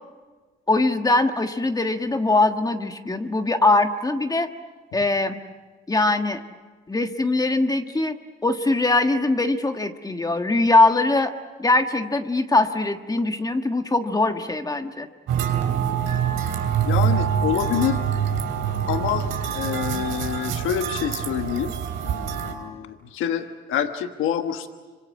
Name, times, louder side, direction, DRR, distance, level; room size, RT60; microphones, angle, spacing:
voice 1, 0.7-4.5 4.9-5.4 5.9-6.4 6.9-8.1 8.4-11.3 11.6-15.1, left 2 dB, 20° left, 7 dB, 1.5 m, -21 dB
sound 1, 15.3-22.5, right 8 dB, 85° right, 3.2 m, -25 dB
voice 2, 16.8-18.0 18.9-19.3 19.5-21.7 22.0-24.7, left 9 dB, 90° left, 7 dB, 1.3 m, -27 dB
26.5 x 25.5 x 7.5 m, 1.4 s
cardioid pair, 90°, 20 cm